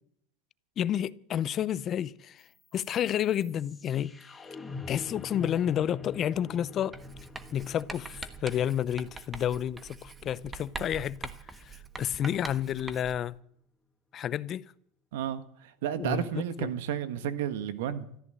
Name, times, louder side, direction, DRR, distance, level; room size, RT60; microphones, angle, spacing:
voice 1, 0.8-2.4 2.7-4.4 4.9-7.0 7.5-13.3 14.1-14.6 16.0-16.7, left 10 dB, 35° left, 0.6 m, -30 dB
sound 1, 2.4-12.4, left 4 dB, 15° left, 1.4 m, -46 dB
Writing, 6.9-13.3, right 4 dB, 15° right, 1.2 m, -44 dB
voice 2, 15.1-15.4 15.8-18.1, right 9 dB, 85° right, 1.6 m, -31 dB
14.0 x 13.5 x 7.7 m
supercardioid pair, 130°, 0 cm